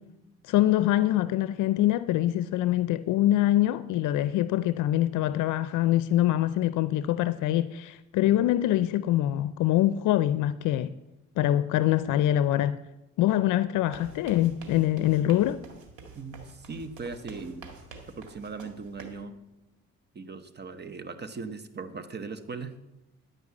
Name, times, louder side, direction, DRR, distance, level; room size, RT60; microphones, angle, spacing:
voice 1, 0.5-10.9 11.4-12.8 13.2-15.6, left 13 dB, 80° left, 0.5 m, -24 dB
sound 1, 13.8-19.2, right 4 dB, 85° right, 2.1 m, -47 dB
voice 2, 16.1-17.7 18.1-19.4 20.1-22.7, right 4 dB, 35° right, 0.9 m, -39 dB
11.0 x 5.4 x 8.3 m
cardioid pair, 90°, 30 cm